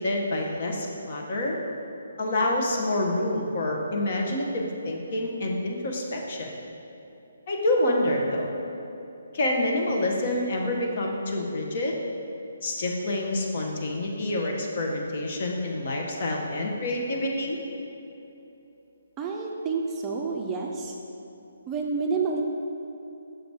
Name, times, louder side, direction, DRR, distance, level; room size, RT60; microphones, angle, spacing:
voice 1, 0.0-1.6 2.2-6.5 7.5-8.6 9.3-11.9 12.6-17.6, left 1 dB, 50° left, 0 dB, 1.0 m, -27 dB
voice 2, 19.2-21.0 21.7-22.4, right 4 dB, 20° right, -1 dB, 0.5 m, -29 dB
6.4 x 4.0 x 4.7 m, 2.9 s
figure-of-eight pair, 145°, 0 cm